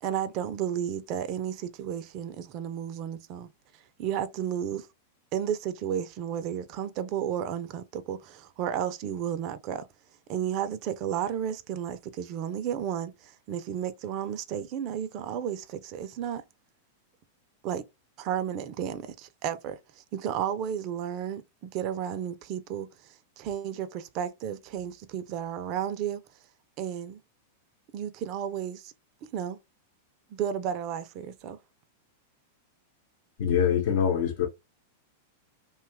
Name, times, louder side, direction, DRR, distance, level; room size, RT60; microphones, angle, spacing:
voice 1, 0.0-3.5 4.0-4.9 5.3-9.9 10.3-16.4 17.6-17.8 18.2-26.2 26.8-27.2 27.9-28.9 29.3-29.6 30.3-31.6, right 9 dB, 45° right, 0.5 m, -33 dB
voice 2, 33.4-34.5, left 8 dB, 65° left, 0.9 m, -24 dB
2.8 x 2.3 x 3.4 m
hypercardioid pair, 130°, 0 cm